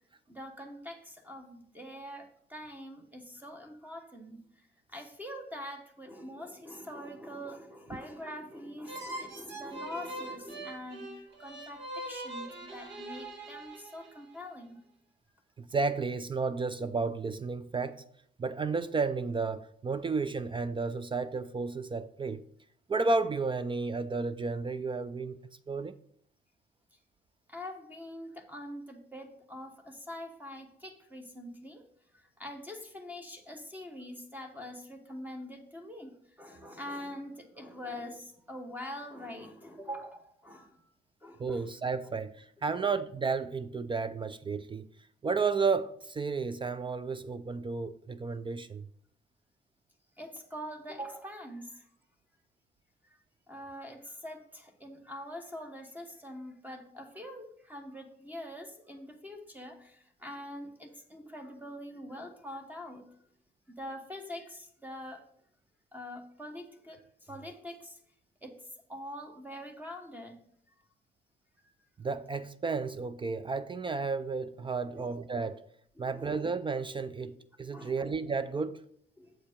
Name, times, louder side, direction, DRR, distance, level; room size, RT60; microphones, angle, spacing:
voice 1, 0.3-14.8 27.5-31.8 32.1-40.9 41.2-41.7 42.7-42.8 50.2-51.9 53.1-53.2 53.5-63.0 63.8-65.3 65.9-68.0 68.4-68.6 68.9-70.4 74.9-75.0 76.0-76.3 77.7-78.0 79.2-79.4, equal, 10° right, 1.1 m, -44 dB
sound 1, 8.8-14.4, right 1 dB, 65° right, 1.7 m, -42 dB
voice 2, 15.6-18.0 18.4-22.4 22.9-25.4 25.7-26.0 41.4-44.9 45.2-48.9 72.0-75.6 76.0-78.8, right 4 dB, 25° right, 0.4 m, -32 dB
7.5 x 4.4 x 5.1 m
cardioid pair, 90°, 20 cm